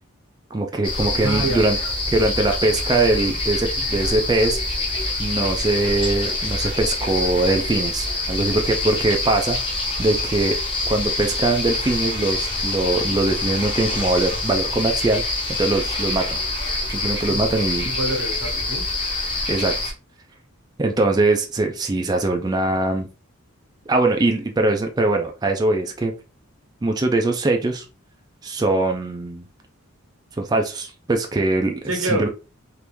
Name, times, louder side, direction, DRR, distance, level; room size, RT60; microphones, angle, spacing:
voice 1, 0.5-1.8 2.1-4.6 5.2-10.6 10.9-16.4 16.9-17.9 19.5-19.9 20.8-23.1 23.9-26.1 26.8-27.8 28.4-29.5 30.4-31.8 32.0-32.3, right 2 dB, 20° right, 0.4 m, -22 dB
sound 1, 0.8-19.9, left 2 dB, 25° left, 0.9 m, -26 dB
voice 2, 1.2-1.6 3.8-3.9 17.3-17.4 17.8-18.9 31.9-32.3, right 1 dB, 90° right, 1.1 m, -26 dB
3.5 x 2.5 x 3.0 m
head